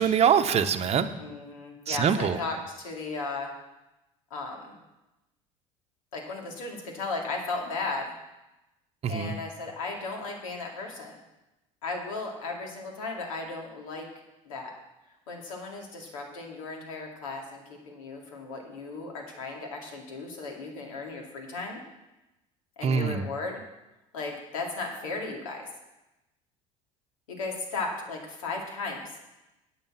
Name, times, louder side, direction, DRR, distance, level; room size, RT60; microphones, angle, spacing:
voice 1, 0.0-1.1 1.9-2.4 9.0-9.3 22.8-23.2, right 7 dB, 40° right, 8 dB, 0.9 m, -24 dB
voice 2, 1.2-3.5 4.3-4.8 6.1-8.1 9.1-11.2 11.8-14.1 14.4-14.7 15.3-21.8 22.8-23.6 24.1-25.7 27.3-29.1, left 3 dB, 85° left, 0 dB, 2.5 m, -35 dB
9.0 x 8.6 x 7.5 m, 0.99 s
hypercardioid pair, 75°, 17 cm